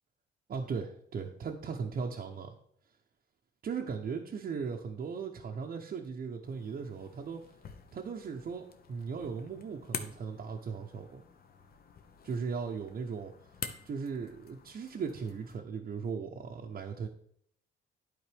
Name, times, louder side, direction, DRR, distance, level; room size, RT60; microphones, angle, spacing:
voice 1, 0.5-2.5 3.6-7.4 7.9-11.2 12.2-13.3 13.8-17.1, right 5 dB, 45° right, 0 dB, 0.7 m, -37 dB
sound 1, 6.4-15.6, left 6 dB, 50° left, 0.8 m, -47 dB
11.0 x 4.2 x 3.4 m, 0.67 s
cardioid pair, 90°, 20 cm